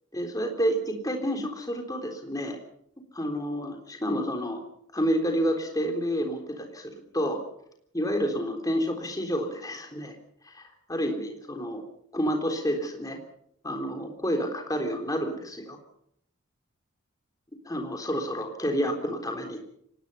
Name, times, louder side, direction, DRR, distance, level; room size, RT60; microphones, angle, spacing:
voice 1, 0.1-2.6 3.1-4.6 4.9-7.4 7.9-10.1 10.4-11.8 12.1-13.2 13.6-15.8 17.7-19.6, equal, 15° left, 3 dB, 3.7 m, -29 dB
25.0 x 19.0 x 5.7 m, 0.70 s
head